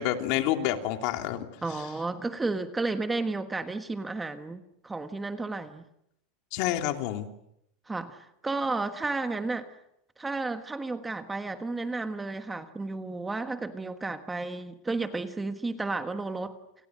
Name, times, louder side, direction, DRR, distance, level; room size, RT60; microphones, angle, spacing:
voice 1, 0.0-1.5 6.5-7.3, left 12 dB, 55° left, 3.0 m, -28 dB
voice 2, 1.6-5.8 7.9-9.7 10.2-16.6, right 3 dB, 10° right, 1.3 m, -32 dB
29.0 x 28.5 x 6.5 m
supercardioid pair, 160°, 0 cm